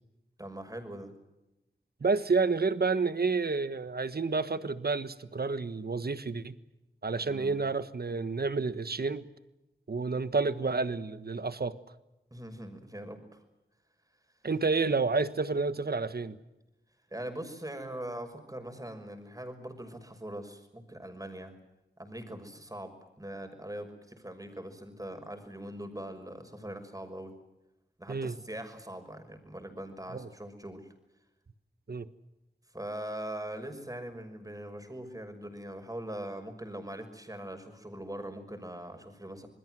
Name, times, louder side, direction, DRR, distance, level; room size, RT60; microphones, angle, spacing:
voice 1, 0.4-1.1 7.2-7.6 12.3-13.4 17.1-21.5 22.0-27.3 28.0-30.9 32.7-39.5, right 1 dB, 20° right, 6 dB, 6.0 m, -41 dB
voice 2, 2.0-6.5 7.0-9.3 9.9-11.8 14.4-16.4 28.1-28.3 30.1-30.3 31.9-32.1, right 4 dB, 60° right, 13 dB, 1.4 m, -30 dB
27.5 x 20.5 x 7.8 m, 0.97 s
wide cardioid pair, 55°, 18 cm